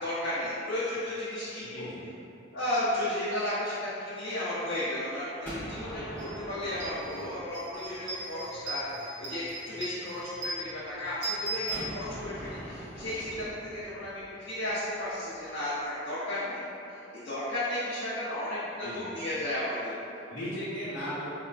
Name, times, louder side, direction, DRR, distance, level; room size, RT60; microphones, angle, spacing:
voice 1, 0.0-1.9 2.5-6.2 6.5-16.6 16.9-20.2, left 1 dB, 60° left, -12 dB, 0.6 m, -34 dB
voice 2, 1.6-2.0 13.3-13.4 18.8-19.1 20.3-21.3, equal, 85° left, -10 dB, 0.8 m, -37 dB
Gunshot gunfire, 5.4-8.3 11.7-15.5, right 1 dB, 10° left, 0.7 m, -42 dB
sound 1, 6.2-6.3 6.7-12.5, right 2 dB, 40° right, 0.5 m, -39 dB
4.0 x 2.2 x 2.3 m, 2.9 s
head